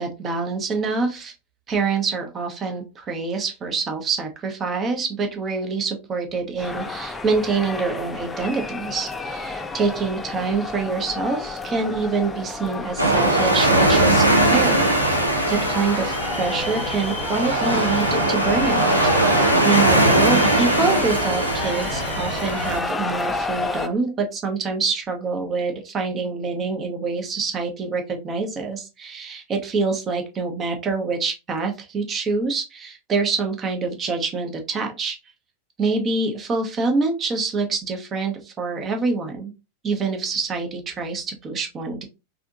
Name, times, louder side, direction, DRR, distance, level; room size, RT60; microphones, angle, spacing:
voice 1, 0.0-1.3 1.7-14.8 15.1-18.9 19.4-35.2 35.8-39.5 39.8-42.0, right 4 dB, 25° right, 4 dB, 0.9 m, -26 dB
sound 1, 6.6-23.9, left 3 dB, 15° left, 0.4 m, -31 dB
sound 2, 13.0-22.8, right 1 dB, 90° right, 0.7 m, -20 dB
3.4 x 2.7 x 2.5 m, 0.27 s
figure-of-eight pair, 90°, 0 cm